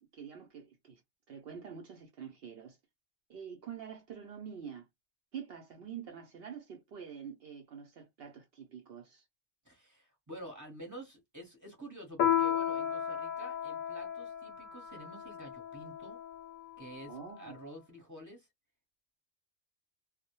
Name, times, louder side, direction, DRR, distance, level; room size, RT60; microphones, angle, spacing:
voice 1, 0.1-1.0 1.3-2.8 3.3-4.9 5.3-9.2 17.1-17.6, right 7 dB, 65° right, 0.7 m, -46 dB
voice 2, 9.6-16.2 16.8-18.5, right 1 dB, 15° right, 0.7 m, -49 dB
Piano, 12.2-17.1, left 9 dB, 90° left, 1.0 m, -34 dB
2.1 x 2.1 x 2.8 m
omnidirectional pair, 1.3 m